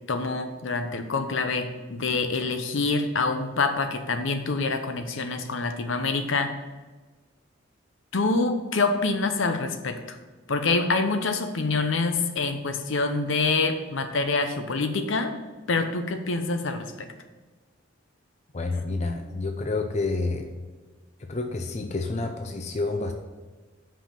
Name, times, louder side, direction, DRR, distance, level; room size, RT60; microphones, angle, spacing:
voice 1, 0.1-6.5 8.1-10.2 10.5-15.3 15.7-17.1, left 3 dB, 70° left, 7 dB, 0.8 m, -26 dB
voice 2, 18.5-20.5 21.3-23.1, left 3 dB, 35° left, 5 dB, 0.5 m, -29 dB
5.7 x 5.2 x 6.7 m, 1.3 s
head